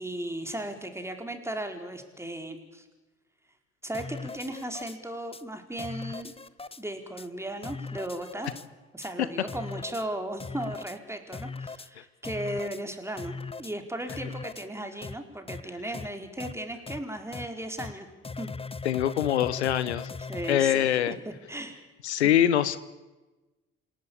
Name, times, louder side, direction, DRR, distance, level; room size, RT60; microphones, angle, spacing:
voice 1, 0.0-2.9 3.8-6.3 6.8-8.5 8.9-18.1 18.4-18.5 20.3-21.8 22.1-22.3, right 1 dB, 10° right, 5 dB, 4.5 m, -36 dB
sound 1, 3.9-5.0 5.3-5.4 5.8-6.8 7.2-7.3 7.6-8.7 9.0-9.1 9.5-10.0 10.4-11.0 11.3-11.9 12.2-12.8 13.2-13.7 14.1-14.7 15.0-15.2 15.5-15.6 15.9-16.1 16.4-16.5 16.9-17.0 17.3-17.5 17.8-17.9 18.2-20.6, left 4 dB, 15° left, 1.1 m, -39 dB
voice 2, 18.8-20.1 20.5-21.2 22.0-22.8, left 11 dB, 85° left, 16 dB, 0.9 m, -24 dB
27.5 x 18.0 x 8.8 m, 1.2 s
hypercardioid pair, 55°, 33 cm